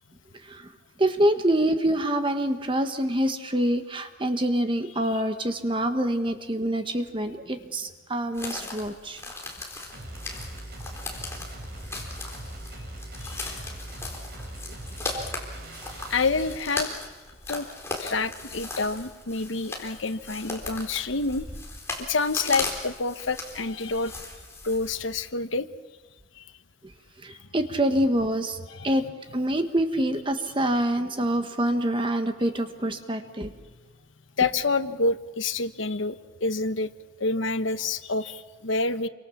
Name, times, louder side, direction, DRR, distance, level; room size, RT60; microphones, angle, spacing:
voice 1, 1.0-9.2 15.1-15.2 27.2-28.6 28.8-29.0 29.3-33.5, right 1 dB, 25° right, 7 dB, 1.5 m, -26 dB
sound 1, 8.3-25.3, left 2 dB, 15° left, 4.0 m, -38 dB
sound 2, 9.9-16.6, right 1 dB, 50° right, 5.2 m, -40 dB
voice 2, 13.2-13.6 16.1-16.9 17.5-17.7 18.0-21.5 22.0-24.2 24.6-25.7 26.3-26.5 27.3-27.4 28.7-29.0 34.4-36.9 37.2-39.1, left 3 dB, 75° left, 11 dB, 1.1 m, -28 dB
28.5 x 24.5 x 7.2 m, 1.2 s
head